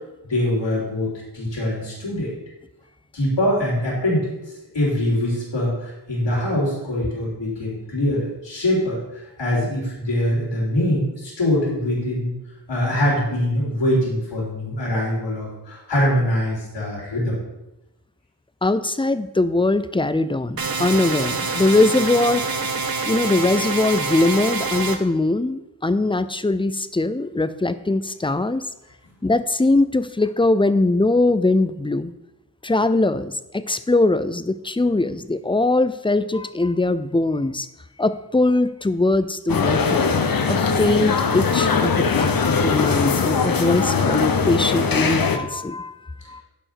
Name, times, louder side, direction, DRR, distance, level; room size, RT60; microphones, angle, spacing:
voice 1, 0.2-2.3 3.1-12.3 12.7-17.4, left 1 dB, 90° left, -5 dB, 4.1 m, -23 dB
voice 2, 18.6-22.5 23.1-28.6 29.2-32.1 32.6-37.7 38.0-40.1 40.5-46.4, left 2 dB, 15° left, 13 dB, 0.4 m, -21 dB
sound 1, 20.6-25.0, right 4 dB, 55° right, 1.0 m, -26 dB
sound 2, 39.5-45.4, left 5 dB, 55° left, 0.9 m, -20 dB
11.0 x 5.1 x 5.8 m, 0.93 s
wide cardioid pair, 105°, 42 cm